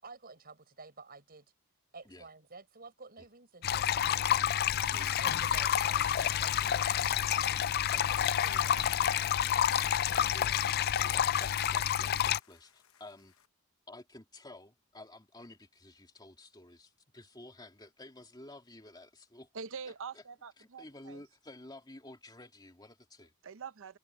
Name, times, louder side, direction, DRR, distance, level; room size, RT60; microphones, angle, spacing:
voice 1, 0.0-1.5 1.9-4.6 5.2-7.6 7.9-10.4, right 3 dB, 45° right, 6.0 m, -52 dB
sound 1, 3.6-12.4, left 10 dB, 45° left, 0.4 m, -29 dB
sound 2, 4.7-13.4, left 8 dB, 65° left, 1.1 m, -49 dB
voice 2, 4.8-5.3 10.1-10.6 11.0-13.3 13.9-19.5 19.8-20.2 20.6-23.3, left 2 dB, 20° left, 2.6 m, -52 dB
voice 3, 19.5-21.2 23.4-24.0, right 5 dB, 60° right, 0.7 m, -44 dB
head